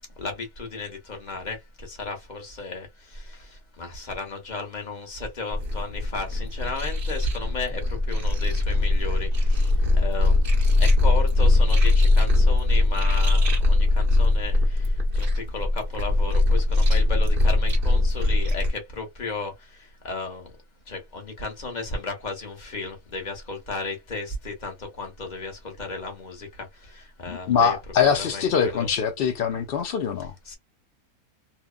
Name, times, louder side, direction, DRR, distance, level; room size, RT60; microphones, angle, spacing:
voice 1, 0.2-10.5 10.8-20.5 20.9-27.8 28.2-28.9 30.5-30.6, left 3 dB, 35° left, 1.0 m, -34 dB
sound 1, 5.5-18.7, left 2 dB, 45° right, 0.9 m, -21 dB
voice 2, 27.3-30.3, left 7 dB, 75° left, 0.5 m, -23 dB
2.9 x 2.2 x 2.2 m
omnidirectional pair, 1.6 m